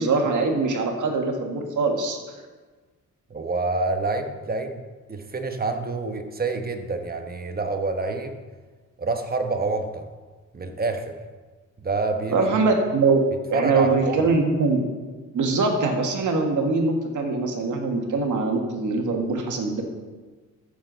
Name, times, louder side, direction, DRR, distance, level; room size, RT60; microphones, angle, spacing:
voice 1, 0.0-2.2 12.3-13.2 13.5-14.9 15.3-19.8, right 3 dB, 70° right, 3 dB, 1.8 m, -22 dB
voice 2, 3.3-4.8 5.1-8.4 9.0-10.1 10.5-11.2 11.8-12.4 13.5-14.3, right 3 dB, 30° right, 6 dB, 1.1 m, -27 dB
14.0 x 6.9 x 4.0 m, 1.3 s
cardioid pair, 100°, 31 cm